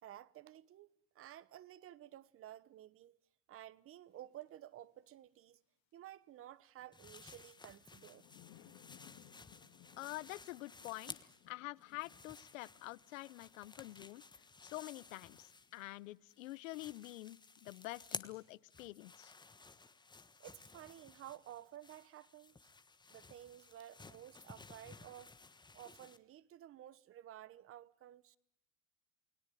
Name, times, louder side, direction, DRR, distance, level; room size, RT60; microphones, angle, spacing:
voice 1, 0.0-3.2 3.5-5.6 5.9-8.2 20.4-22.7 23.1-25.3 25.7-28.4, right 12 dB, 35° right, 1.1 m, -54 dB
sound 1, 4.4-4.5 6.8-20.6, left 12 dB, 60° left, 3.2 m, -66 dB
sound 2, 6.9-11.5 11.8-16.0 16.3-26.2, left 4 dB, 10° left, 1.3 m, -55 dB
voice 2, 10.0-11.2 11.5-14.2 14.6-19.3, left 19 dB, 80° left, 0.9 m, -47 dB
29.0 x 17.5 x 9.1 m
supercardioid pair, 115°, 39 cm